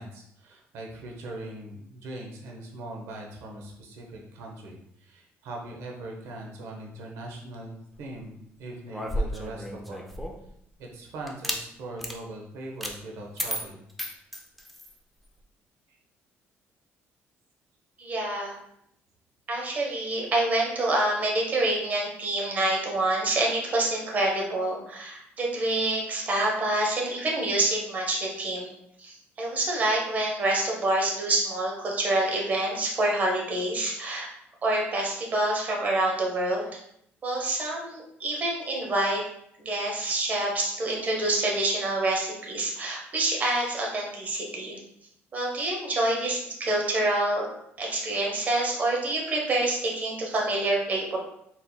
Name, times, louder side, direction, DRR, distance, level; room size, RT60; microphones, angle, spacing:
voice 1, 0.0-10.1 10.8-13.9, right 2 dB, 90° right, 0 dB, 0.8 m, -41 dB
sound 1, 8.9-10.5 11.3-11.6 12.0-12.2 12.8-13.0 13.4-14.9, equal, ahead, 0.4 m, -32 dB
voice 2, 18.0-18.5 19.5-28.7 29.0-34.3 34.6-36.6 37.2-39.2 39.6-44.8 45.3-47.5 47.8-51.2, right 2 dB, 35° right, -1 dB, 1.0 m, -27 dB
4.1 x 4.1 x 2.2 m, 0.74 s
cardioid pair, 150°, 5 cm